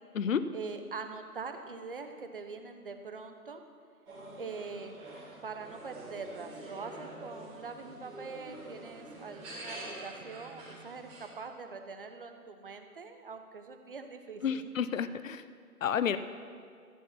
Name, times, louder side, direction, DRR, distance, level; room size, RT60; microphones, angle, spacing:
voice 1, 0.5-3.6 4.4-5.0 5.4-14.7, right 4 dB, 35° right, 6 dB, 0.9 m, -43 dB
sound 1, 4.1-11.3, right 1 dB, 15° right, 3.4 m, -46 dB
voice 2, 14.4-15.4 15.8-16.2, left 8 dB, 60° left, 13 dB, 0.6 m, -30 dB
13.0 x 8.8 x 5.9 m, 2.2 s
figure-of-eight pair, 155°, 46 cm